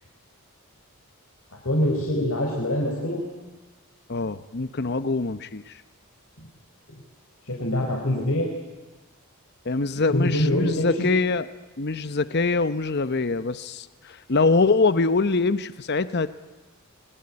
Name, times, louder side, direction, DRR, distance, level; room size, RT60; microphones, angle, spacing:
voice 1, 1.6-3.2 7.5-8.5 10.1-11.1, left 1 dB, 65° left, -1 dB, 4.4 m, -24 dB
voice 2, 4.1-5.8 9.6-11.5 11.8-16.3, left 3 dB, 50° left, 13 dB, 0.8 m, -24 dB
26.0 x 21.5 x 9.8 m, 1.2 s
head